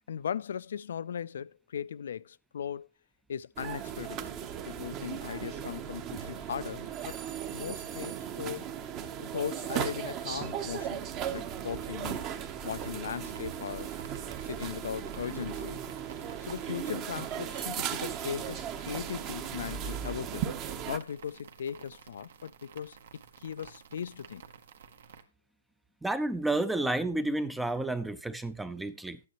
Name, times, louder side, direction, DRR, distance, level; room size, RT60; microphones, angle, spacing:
voice 1, 0.1-2.9 3.3-4.3 4.7-7.2 7.5-8.7 9.2-12.2 12.6-14.0 14.4-15.8 16.4-20.5 20.9-24.4, left 8 dB, 70° left, 0.4 m, -38 dB
sound 1, 3.6-21.0, right 9 dB, 25° right, 0.9 m, -37 dB
sound 2, 12.6-25.2, right 6 dB, 65° right, 1.5 m, -52 dB
voice 2, 26.0-29.2, right 2 dB, 5° right, 0.5 m, -31 dB
12.0 x 9.5 x 3.0 m
hypercardioid pair, 155°, 0 cm